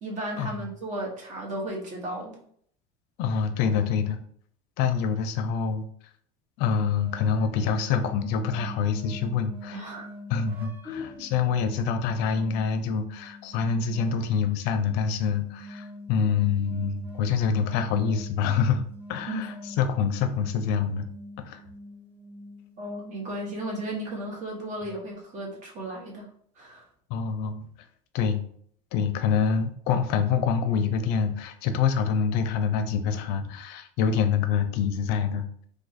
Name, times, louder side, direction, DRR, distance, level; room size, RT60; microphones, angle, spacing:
voice 1, 0.0-2.4 9.7-10.1 10.8-11.3 19.3-19.5 22.8-26.3 26.6-26.8, right 1 dB, 40° right, -2 dB, 1.1 m, -35 dB
voice 2, 3.2-4.2 4.8-5.9 6.6-9.8 10.3-18.8 19.1-21.1 21.5-21.6 27.1-27.7 28.1-28.4 28.9-35.5, left 6 dB, 55° left, 9 dB, 0.5 m, -26 dB
sound 1, 6.6-24.3, left 1 dB, 10° right, 0.5 m, -44 dB
2.6 x 2.4 x 4.0 m, 0.62 s
supercardioid pair, 135°, 20 cm